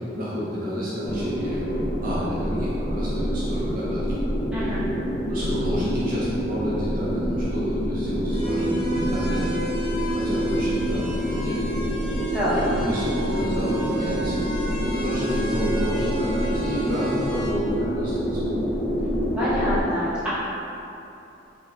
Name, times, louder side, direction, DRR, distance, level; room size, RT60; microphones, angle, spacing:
voice 1, 0.0-1.6 2.0-4.2 5.3-9.5 10.1-11.7 12.5-14.4 14.8-18.5, equal, 50° right, -8 dB, 0.6 m, -30 dB
sound 1, 1.0-19.8, equal, 15° left, 0.5 m, -27 dB
voice 2, 4.5-4.8 12.3-12.5 19.4-20.3, equal, 5° right, -12 dB, 0.9 m, -26 dB
sound 2, 8.3-17.5, right 1 dB, 50° left, 1.0 m, -32 dB
3.5 x 3.1 x 2.3 m, 2.9 s
head